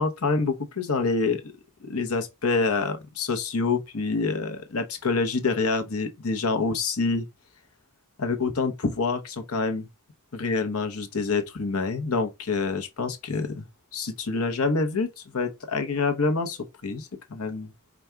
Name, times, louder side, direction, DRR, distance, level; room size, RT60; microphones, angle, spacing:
voice 1, 0.0-1.4 1.8-7.3 8.2-9.9 10.3-13.6 13.9-17.7, left 4 dB, 85° left, 0.9 m, -27 dB
5.1 x 2.3 x 4.5 m
head